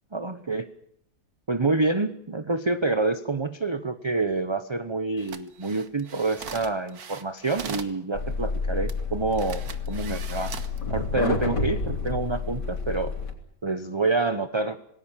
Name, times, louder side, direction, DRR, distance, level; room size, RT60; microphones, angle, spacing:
voice 1, 0.1-0.7 1.5-10.5 10.9-13.1 13.6-14.8, right 3 dB, 25° right, 11 dB, 0.7 m, -27 dB
sound 1, 5.2-8.0 8.9-9.0 9.3-10.8 11.3-11.6, right 6 dB, 65° right, 1.9 m, -40 dB
sound 2, 8.1-13.3, left 4 dB, 75° left, 4.3 m, -29 dB
27.5 x 19.5 x 7.4 m, 0.73 s
omnidirectional pair, 1.8 m